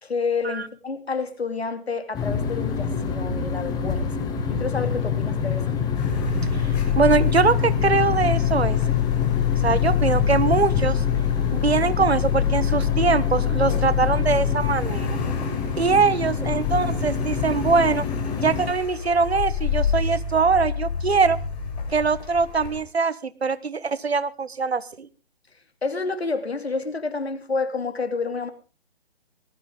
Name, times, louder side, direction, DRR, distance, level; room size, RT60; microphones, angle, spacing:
voice 1, 0.0-4.2 4.5-5.8 25.8-28.5, left 4 dB, 80° left, 2.7 m, -29 dB
sound 1, 2.1-18.7, left 7 dB, 10° left, 1.9 m, -26 dB
Car, 5.9-22.8, left 7 dB, 40° left, 6.5 m, -27 dB
voice 2, 6.5-8.8 9.6-11.0 11.5-15.2 15.8-18.1 18.4-21.4 21.9-25.1, right 4 dB, 80° right, 1.4 m, -22 dB
19.5 x 14.0 x 3.7 m
figure-of-eight pair, 140°, 31 cm